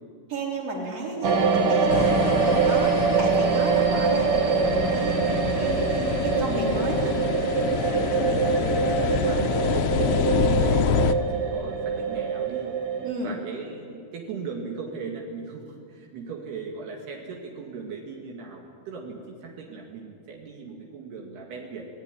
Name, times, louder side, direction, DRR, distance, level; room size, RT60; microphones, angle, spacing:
voice 1, 0.3-7.2 9.2-9.4 13.0-13.3, right 2 dB, 35° right, 0 dB, 4.8 m, -33 dB
sound 1, 1.2-13.1, right 5 dB, 50° right, 1.7 m, -24 dB
sound 2, 1.9-11.1, left 9 dB, 85° left, 2.9 m, -27 dB
voice 2, 8.1-12.7 13.2-21.9, right 4 dB, 75° right, 1 dB, 4.1 m, -38 dB
26.5 x 18.0 x 10.0 m, 2.3 s
omnidirectional pair, 4.7 m